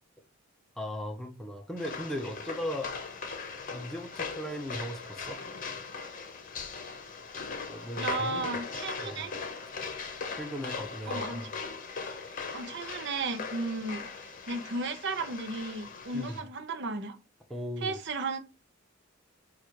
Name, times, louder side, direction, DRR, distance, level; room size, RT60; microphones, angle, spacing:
voice 1, 0.8-2.9 3.7-5.4 7.7-8.6 9.0-9.3 10.4-11.5 16.1-16.4 17.5-18.0, equal, ahead, 0.6 m, -37 dB
sound 1, 1.8-16.4, left 4 dB, 40° left, 0.8 m, -39 dB
voice 2, 8.0-9.3 11.1-11.4 12.5-14.1 14.5-17.2 17.8-18.4, right 3 dB, 55° right, 0.6 m, -34 dB
4.7 x 2.4 x 4.5 m
head